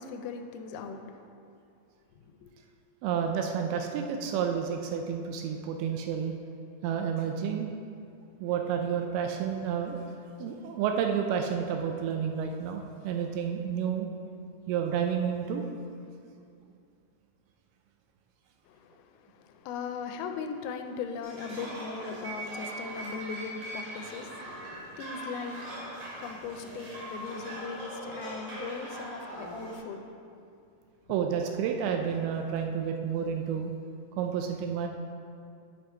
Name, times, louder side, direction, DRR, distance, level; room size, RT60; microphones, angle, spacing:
voice 1, 0.0-1.3 2.1-2.5 18.7-30.1, left 5 dB, 80° left, 6 dB, 2.4 m, -39 dB
voice 2, 3.0-6.3 6.8-7.7 8.4-10.0 10.4-14.1 14.7-15.6 31.1-33.7 34.2-34.9, right 7 dB, 85° right, 4 dB, 2.5 m, -30 dB
sound 1, 21.2-29.8, right 1 dB, 60° right, 3.9 m, -40 dB
11.0 x 5.4 x 4.4 m, 2.4 s
omnidirectional pair, 4.5 m